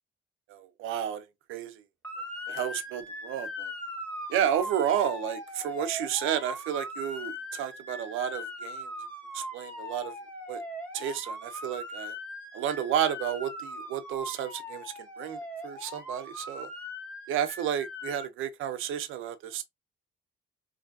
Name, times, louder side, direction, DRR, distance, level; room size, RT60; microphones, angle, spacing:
voice 1, 0.5-1.8 2.5-3.7 4.3-8.9 9.3-10.1 10.5-10.6 10.9-12.1 12.5-16.7 17.3-19.6, right 9 dB, 85° right, 0.6 m, -31 dB
Motor vehicle (road) / Siren, 2.0-18.3, left 1 dB, 10° left, 1.3 m, -40 dB
3.2 x 2.5 x 2.5 m
cardioid pair, 90°, 20 cm